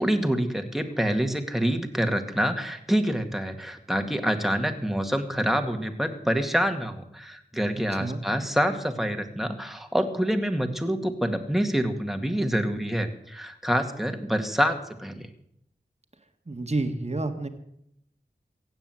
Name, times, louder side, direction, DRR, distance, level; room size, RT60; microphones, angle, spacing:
voice 1, 0.0-15.3, equal, ahead, 5 dB, 2.2 m, -26 dB
voice 2, 7.7-8.2 16.5-17.5, right 2 dB, 40° right, 5 dB, 1.8 m, -30 dB
16.0 x 9.1 x 7.8 m, 0.74 s
wide cardioid pair, 40°, 17 cm